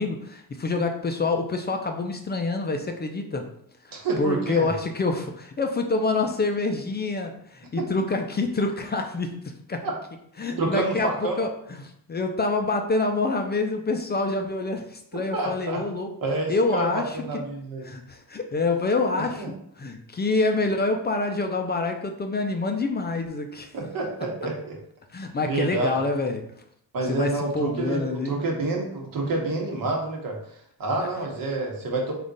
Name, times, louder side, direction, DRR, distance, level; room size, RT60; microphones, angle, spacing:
voice 1, 0.0-3.5 3.8-9.8 10.4-16.1 16.5-17.4 17.8-19.4 19.8-23.7 25.1-26.5 27.1-28.4 31.0-31.1, left 3 dB, 25° left, 4 dB, 0.4 m, -27 dB
voice 2, 3.9-4.7 7.8-7.9 9.8-9.9 10.6-11.4 15.3-15.8 16.2-17.9 19.3-19.5 23.7-24.8 25.4-26.0 26.9-30.4 30.8-32.1, right 2 dB, 60° right, 0 dB, 1.1 m, -28 dB
3.6 x 2.5 x 3.9 m, 0.69 s
cardioid pair, 85°, 39 cm